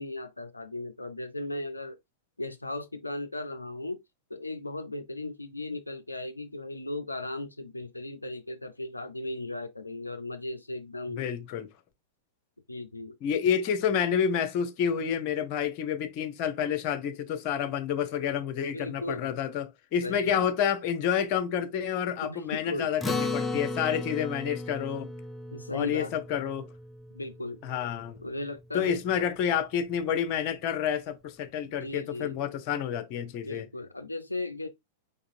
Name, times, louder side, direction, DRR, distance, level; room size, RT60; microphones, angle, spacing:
voice 1, 0.0-2.0 2.4-4.0 4.3-11.3 12.7-13.2 18.7-19.3 20.0-20.5 22.2-22.9 25.5-26.1 27.1-27.6 28.2-29.0 31.8-32.4 33.5-34.7, left 2 dB, 85° left, 0.4 m, -36 dB
voice 2, 11.1-11.7 13.2-25.1 25.7-26.7 27.6-28.2 28.7-33.7, left 8 dB, 40° left, 0.8 m, -29 dB
Acoustic guitar, 23.0-27.7, left 3 dB, 10° left, 0.6 m, -35 dB
5.3 x 3.9 x 2.6 m
figure-of-eight pair, 95°, 0 cm